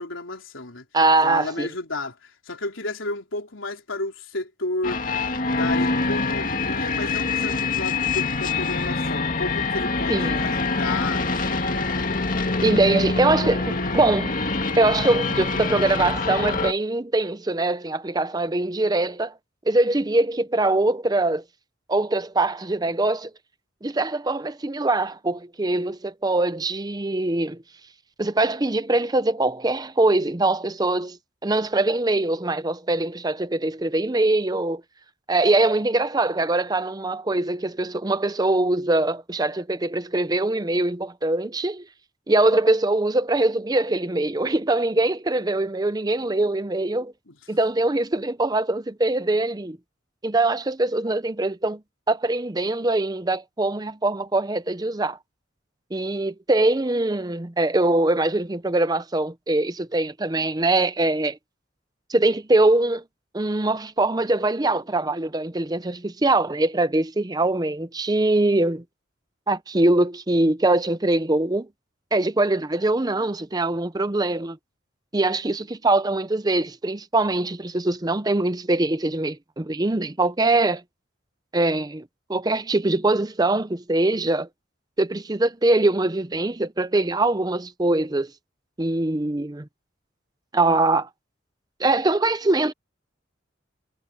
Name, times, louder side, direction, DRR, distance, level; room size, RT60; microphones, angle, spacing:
voice 1, 0.0-0.9 1.2-5.0 5.5-11.9 47.3-47.4, left 2 dB, 85° left, 3.7 m, -32 dB
voice 2, 0.9-1.7 10.1-10.4 12.6-14.4 14.8-19.3 19.7-21.4 21.9-23.3 23.8-27.6 28.2-31.2 31.4-34.8 35.3-41.9 42.3-47.1 47.5-49.8 50.2-51.8 52.1-55.2 55.9-61.4 62.1-63.0 63.3-68.8 69.5-71.7 72.1-74.6 75.1-80.8 81.5-82.0 82.3-84.5 85.0-88.3 88.8-89.7 90.5-91.1 91.8-92.7, right 2 dB, 20° right, 0.6 m, -22 dB
sound 1, 4.8-16.7, left 3 dB, 45° left, 2.3 m, -25 dB
head